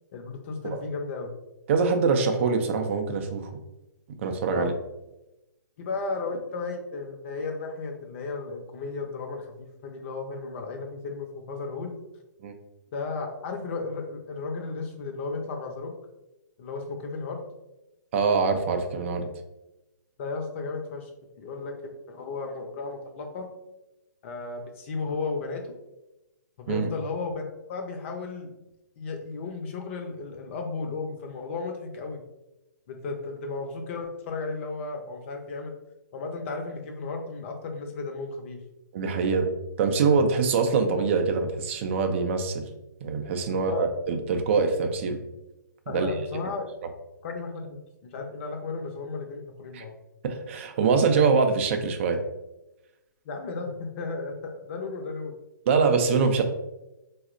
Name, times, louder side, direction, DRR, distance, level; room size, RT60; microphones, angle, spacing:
voice 1, 0.1-1.3 4.5-4.7 5.8-12.0 12.9-15.9 16.6-17.4 20.2-21.1 21.4-21.7 22.1-23.5 24.2-25.7 26.6-27.4 27.7-28.5 29.0-32.2 32.9-35.7 36.1-38.6 43.5-43.9 45.9-46.7 47.2-49.9 53.2-55.3, left 4 dB, 40° left, 3 dB, 0.5 m, -34 dB
voice 2, 1.7-3.5 4.2-4.7 12.4-12.5 18.1-19.3 26.7-26.9 38.9-39.5 39.8-42.6 43.0-45.2 45.9-46.1 49.7-49.8 50.2-52.2 55.7-56.4, right 5 dB, 40° right, 6 dB, 0.4 m, -24 dB
4.0 x 2.0 x 2.5 m, 0.97 s
figure-of-eight pair, 130°, 11 cm